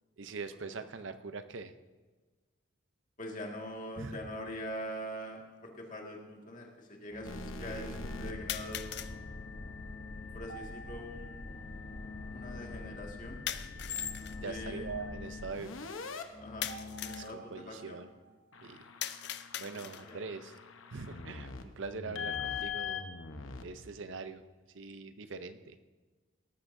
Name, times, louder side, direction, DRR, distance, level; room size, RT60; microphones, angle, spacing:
voice 1, 0.2-1.7 4.0-4.2 14.4-15.7 17.2-18.1 18.6-18.8 19.6-20.6 20.9-23.1 23.6-24.4 24.7-25.8, right 4 dB, 75° right, 10 dB, 0.6 m, -42 dB
voice 2, 3.2-9.2 10.3-11.7 12.3-13.4 14.4-14.8 16.4-16.7 17.0-18.0 19.6-19.8 20.1-20.2, equal, 40° left, 0 dB, 1.9 m, -43 dB
sound 1, 4.1-4.2 5.2-5.3 8.5-9.2 13.5-14.4 16.6-17.3 19.0-20.2, left 11 dB, 55° left, 0.5 m, -40 dB
sound 2, 7.1-17.2, left 3 dB, 20° left, 1.2 m, -49 dB
sound 3, 7.2-16.2 16.7-18.1 18.5-23.9, left 5 dB, 85° left, 0.9 m, -43 dB
18.0 x 13.5 x 2.7 m, 1.3 s
head